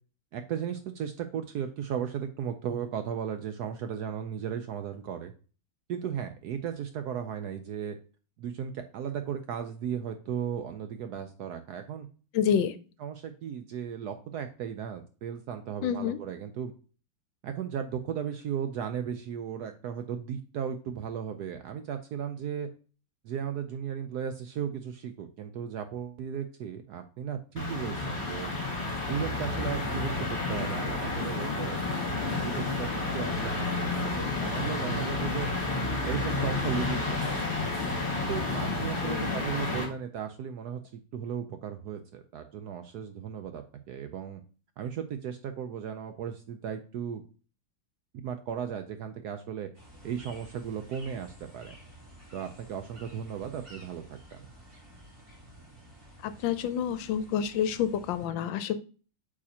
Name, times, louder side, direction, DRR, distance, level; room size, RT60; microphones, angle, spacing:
voice 1, 0.3-5.3 5.9-8.0 8.4-12.1 13.0-16.7 17.4-22.7 23.2-28.5 29.0-31.8 32.4-35.5 36.0-37.4 38.3-40.8 41.1-44.4 44.8-47.2 48.2-49.7 50.0-51.7 52.3-54.5, right 8 dB, 70° right, 8 dB, 0.9 m, -36 dB
voice 2, 12.3-12.7 15.8-16.2 39.1-39.4 56.2-58.8, left 8 dB, 75° left, 12 dB, 1.2 m, -28 dB
sound 1, 27.6-39.8, left 3 dB, 35° left, 2.0 m, -31 dB
sound 2, 49.7-58.3, equal, 35° right, 4.3 m, -52 dB
8.5 x 4.9 x 2.8 m, 0.37 s
omnidirectional pair, 2.2 m